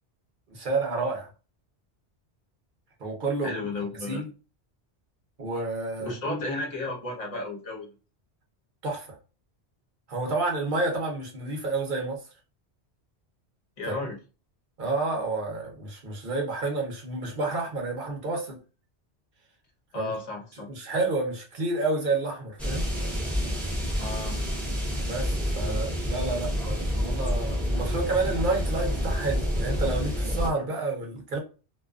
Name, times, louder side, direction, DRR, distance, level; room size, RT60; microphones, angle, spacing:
voice 1, 0.5-1.3 3.0-3.5 4.1-4.3 5.4-6.4 8.8-9.2 10.1-12.2 13.8-14.0 14.8-18.6 19.9-20.1 20.7-22.9 25.1-31.4, right 3 dB, 50° right, 0.8 m, -30 dB
voice 2, 3.4-4.2 6.0-7.9 13.8-14.2 19.9-20.7 24.0-24.4, left 2 dB, 35° left, 0.9 m, -33 dB
sound 1, 22.6-30.5, equal, ahead, 0.6 m, -28 dB
2.6 x 2.3 x 2.3 m
omnidirectional pair, 1.1 m